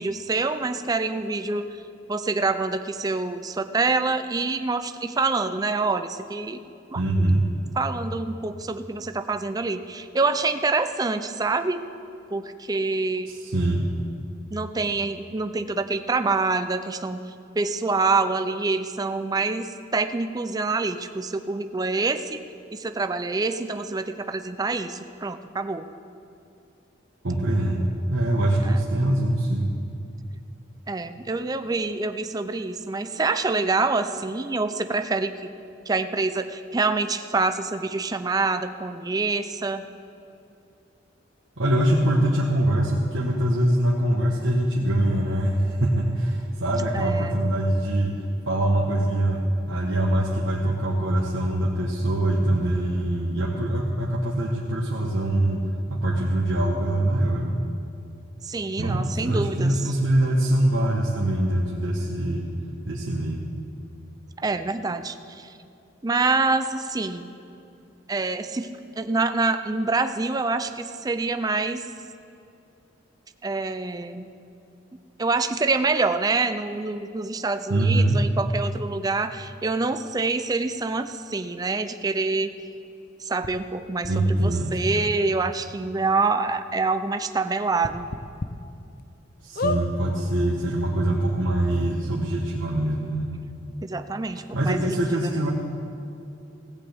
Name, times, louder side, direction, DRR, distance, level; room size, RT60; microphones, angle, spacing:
voice 1, 0.0-1.7 2.1-6.6 6.9-7.0 7.8-11.8 12.3-13.3 14.5-17.2 17.6-22.4 22.7-25.9 28.6-28.8 30.9-35.5 35.9-39.8 46.9-47.4 58.4-59.7 64.4-65.5 66.0-67.3 68.1-68.7 69.0-71.9 73.4-74.3 75.2-82.5 83.2-88.1 93.8-95.1, right 3 dB, 20° right, 9 dB, 0.4 m, -26 dB
voice 2, 6.9-7.5 13.3-13.9 27.2-29.7 41.6-49.4 49.7-55.6 55.9-57.6 58.8-62.5 62.8-63.4 77.7-78.2 84.1-84.8 89.4-93.3 94.5-95.5, right 1 dB, 85° right, -3 dB, 1.3 m, -23 dB
sound 1, 83.4-83.5 84.0-84.1 85.1-85.2 85.5-85.6 86.0-86.1 87.8-88.5 89.0-89.1 89.5-89.8 90.7-90.8 91.0-91.1, left 2 dB, 50° left, 0.6 m, -29 dB
16.0 x 16.0 x 3.5 m, 2.6 s
head